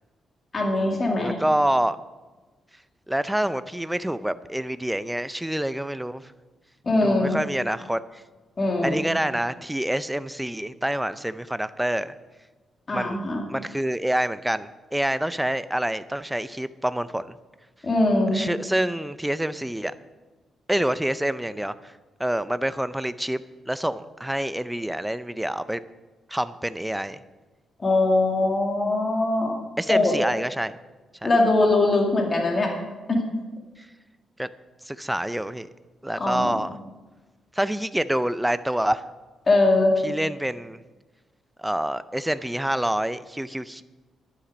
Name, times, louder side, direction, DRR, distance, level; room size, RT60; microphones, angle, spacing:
voice 1, 0.5-1.3 6.8-7.4 8.6-9.0 12.9-13.4 17.8-18.4 27.8-29.6 29.9-30.1 31.2-32.7 33.1-33.2 36.2-36.6 39.5-39.9, left 2 dB, 30° left, 1 dB, 2.1 m, -21 dB
voice 2, 1.2-2.0 3.1-6.2 7.0-8.2 8.8-12.1 12.9-13.2 13.5-17.4 18.3-19.9 20.7-21.9 22.2-23.4 23.7-25.8 26.3-27.2 29.8-30.7 31.2-31.3 34.4-34.5 34.8-35.7 36.0-36.8 37.6-39.0 40.0-40.8 41.6-43.8, right 1 dB, 5° right, 14 dB, 0.4 m, -27 dB
11.5 x 10.0 x 5.2 m, 1.3 s
cardioid pair, 120°, 0 cm